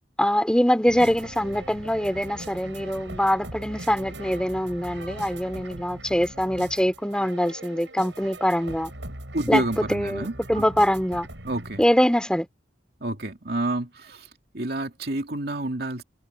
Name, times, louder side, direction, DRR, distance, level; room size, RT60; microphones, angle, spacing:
voice 1, 0.2-8.9 9.5-11.3 11.8-12.5, equal, 5° left, 3.4 m, -23 dB
sound 1, 0.9-11.8, right 1 dB, 75° right, 6.8 m, -40 dB
voice 2, 9.3-10.7 11.4-11.8 13.0-14.3 14.5-16.0, right 1 dB, 60° right, 2.6 m, -29 dB
head